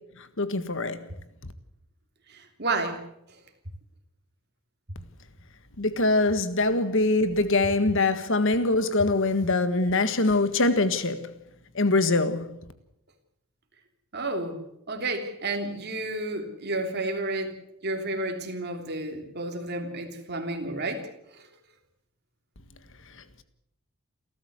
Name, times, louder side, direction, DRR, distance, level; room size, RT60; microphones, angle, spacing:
voice 1, 0.4-1.1 5.8-11.3 11.8-12.6, left 2 dB, 60° left, 1.7 m, -23 dB
voice 2, 2.3-3.0 14.1-14.6 14.9-17.5 17.8-21.4, right 2 dB, 45° right, 3.3 m, -31 dB
29.0 x 13.5 x 8.2 m
head